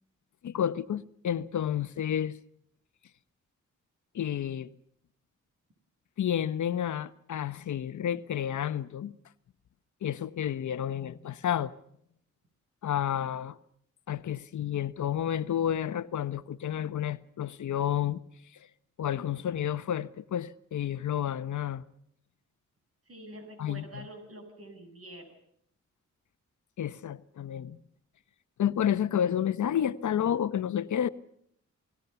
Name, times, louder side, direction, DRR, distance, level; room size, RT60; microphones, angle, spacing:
voice 1, 0.4-2.4 4.1-4.7 6.2-9.1 10.0-11.7 12.8-13.6 14.1-18.2 19.0-21.8 23.6-23.8 26.8-27.8 28.6-31.1, left 10 dB, 75° left, 1.0 m, -30 dB
voice 2, 23.1-25.4, right 1 dB, 50° right, 7.9 m, -46 dB
28.5 x 19.0 x 7.0 m
cardioid pair, 70°, 30 cm